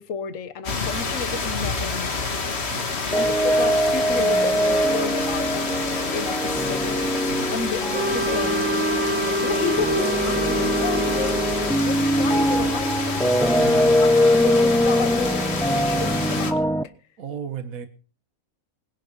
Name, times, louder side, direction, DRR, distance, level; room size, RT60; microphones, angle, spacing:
voice 1, 0.0-8.8 9.4-11.4 11.8-13.5 14.0-14.1 14.4-16.7, left 6 dB, 65° left, 12 dB, 1.5 m, -32 dB
sound 1, 0.6-16.5, left 4 dB, 45° left, 1.9 m, -28 dB
sound 2, 3.1-16.8, equal, 5° left, 0.3 m, -22 dB
Wind instrument woodwind instrument, 7.9-11.9, right 1 dB, 50° right, 1.3 m, -26 dB
voice 2, 13.5-13.9 17.2-17.9, right 7 dB, 70° right, 9 dB, 1.7 m, -35 dB
20.0 x 10.5 x 5.4 m, 0.38 s
omnidirectional pair, 1.5 m